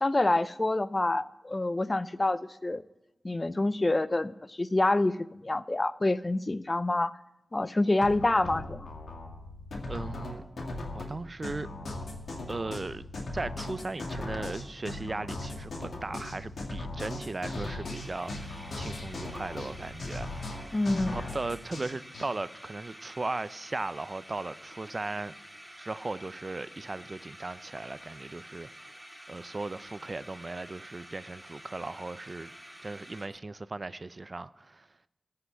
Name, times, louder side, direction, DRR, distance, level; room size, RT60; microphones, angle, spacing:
voice 1, 0.0-2.8 3.2-7.1 7.5-8.9 20.7-21.2, left 2 dB, 35° left, 0.5 m, -27 dB
sound 1, 8.0-22.3, left 2 dB, 75° left, 2.0 m, -38 dB
voice 2, 9.9-10.4 10.9-11.7 12.5-13.1 13.3-20.7 21.1-25.3 25.8-28.7 29.3-32.5 32.8-34.9, right 2 dB, 45° right, 0.4 m, -37 dB
sound 2, 14.0-15.7 16.0-16.1 16.3-16.6 16.8-16.9 17.3-17.4 17.6-33.3, equal, 5° right, 2.0 m, -49 dB
14.0 x 5.7 x 8.0 m
cardioid pair, 45°, 0 cm